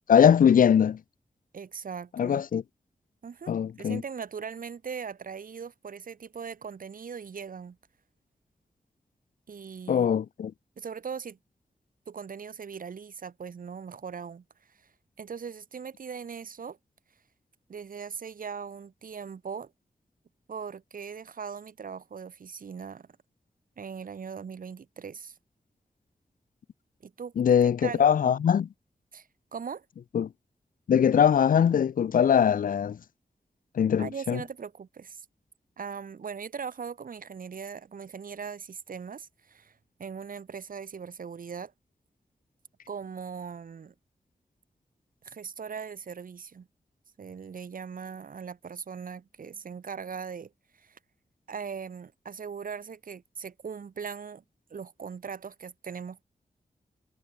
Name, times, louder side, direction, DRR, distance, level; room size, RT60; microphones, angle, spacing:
voice 1, 0.1-1.0 2.2-2.6 3.5-4.0 9.9-10.5 27.4-28.7 30.1-30.3 30.9-33.0 33.8-34.4, left 8 dB, 80° left, 0.5 m, -21 dB
voice 2, 1.5-2.4 3.2-7.8 9.5-10.1 10.8-11.4 12.1-14.8 15.2-16.8 17.7-19.7 20.5-23.1 23.8-25.4 27.0-28.4 29.1-29.8 34.0-35.2 35.8-41.7 42.9-43.9 45.2-46.7 47.2-51.0 51.5-54.4 54.7-56.2, right 6 dB, 80° right, 3.0 m, -40 dB
wide cardioid pair, 95°, 14 cm